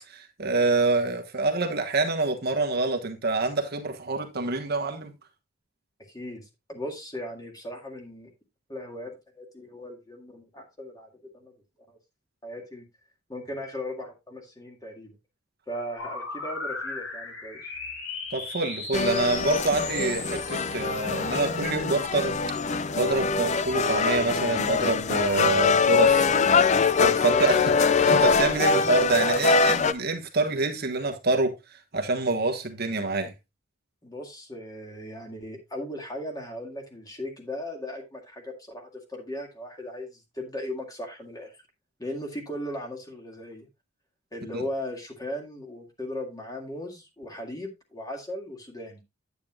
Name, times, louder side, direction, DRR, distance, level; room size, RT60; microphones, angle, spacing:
voice 1, 0.1-5.1 18.3-22.4 22.7-26.3 27.0-27.7 28.0-33.3 44.5-44.6, right 3 dB, 50° right, 1.2 m, -26 dB
voice 2, 6.1-8.3 8.7-11.5 11.9-12.0 12.4-12.8 13.3-15.1 15.7-17.7 27.2-27.5 34.0-41.5 42.0-43.7 44.3-49.0, left 1 dB, 20° left, 2.1 m, -37 dB
sound 1, 16.0-21.5, left 3 dB, 85° left, 4.1 m, -37 dB
sound 2, 18.9-29.9, left 5 dB, 35° left, 0.4 m, -23 dB
9.4 x 9.0 x 2.4 m
head